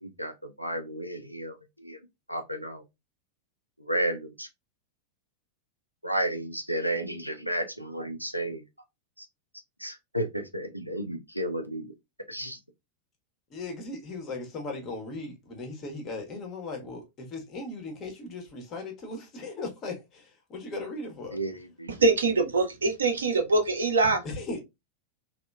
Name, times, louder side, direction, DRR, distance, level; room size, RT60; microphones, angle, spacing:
voice 1, 0.0-2.0 2.3-2.8 3.8-4.5 6.0-8.6 9.2-9.3 9.8-11.9 12.3-12.6 21.3-21.9, right 1 dB, 90° left, 0.4 m, -32 dB
voice 2, 13.5-21.4 24.2-24.6, left 2 dB, 30° left, 0.8 m, -37 dB
voice 3, 21.9-24.2, right 3 dB, 70° right, 0.6 m, -24 dB
2.8 x 2.0 x 2.2 m
figure-of-eight pair, 90°, 0 cm